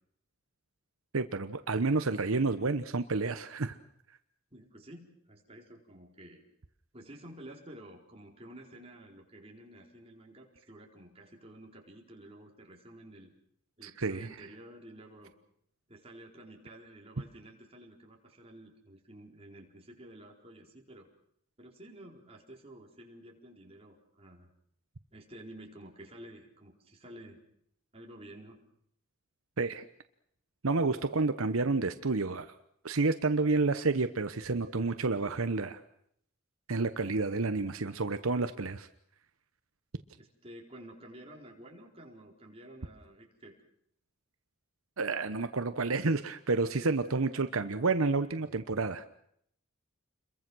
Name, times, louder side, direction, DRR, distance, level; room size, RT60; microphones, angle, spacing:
voice 1, 1.1-3.8 13.8-14.3 29.6-29.8 30.6-32.5 32.8-35.8 36.7-38.9 45.0-49.1, right 3 dB, 75° right, 10 dB, 1.0 m, -30 dB
voice 2, 4.5-6.4 6.9-13.3 13.8-15.3 15.9-21.1 21.6-24.5 25.1-27.4 27.9-28.6 40.2-43.6 48.4-48.6, right 1 dB, 30° right, 0 dB, 4.4 m, -51 dB
29.0 x 22.5 x 6.3 m, 0.69 s
head